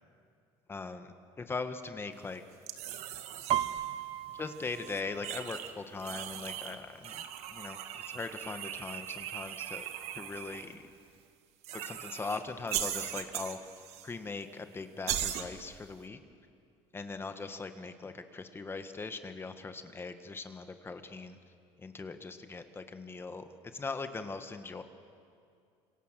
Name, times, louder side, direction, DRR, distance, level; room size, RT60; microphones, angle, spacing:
voice 1, 0.7-2.4 4.4-7.2 7.5-10.8 11.7-13.6 14.0-16.2 16.9-21.4 21.8-23.4 23.7-24.8, left 4 dB, 20° left, 9 dB, 1.6 m, -40 dB
sound 1, 2.7-3.9 4.6-5.7 6.0-6.8 7.0-10.7 11.6-12.4 12.7-14.1 14.4-14.5 15.1-15.5, right 11 dB, 70° right, 1.8 m, -39 dB
Piano, 3.5-7.1 7.5-7.9 8.2-8.9 9.5-9.6 9.8-10.8 11.2-11.3, right 12 dB, 50° right, 0.8 m, -37 dB
27.0 x 25.5 x 7.7 m, 2.3 s
cardioid pair, 130°, 12 cm